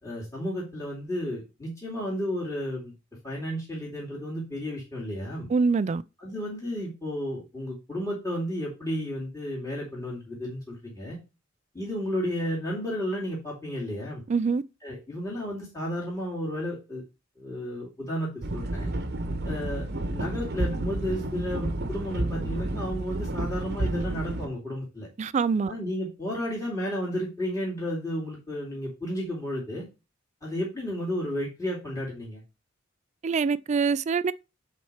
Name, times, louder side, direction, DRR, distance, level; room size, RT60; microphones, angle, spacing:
voice 1, 0.0-2.9 3.2-5.5 6.2-11.2 11.7-14.2 14.8-17.0 17.4-18.9 19.4-25.1 25.7-29.8 30.4-32.4, equal, 15° left, 2.5 m, -32 dB
voice 2, 5.5-6.0 14.3-14.6 25.2-25.7 33.2-34.3, right 5 dB, 35° right, 0.3 m, -24 dB
sound 1, 18.4-24.5, right 1 dB, 55° right, 0.9 m, -31 dB
7.2 x 4.3 x 4.9 m
head